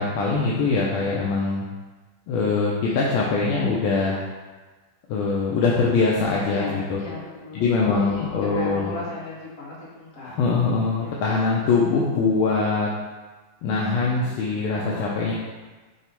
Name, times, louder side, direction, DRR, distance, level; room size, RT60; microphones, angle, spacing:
voice 1, 0.0-1.6 2.3-4.2 5.1-7.0 7.5-8.9 10.2-12.9 13.6-15.3, left 4 dB, 80° left, -3 dB, 1.4 m, -22 dB
voice 2, 2.9-3.3 6.4-10.3 11.0-11.4 14.7-15.3, left 2 dB, 45° left, -6 dB, 1.1 m, -37 dB
5.5 x 2.0 x 4.4 m, 1.3 s
omnidirectional pair, 2.3 m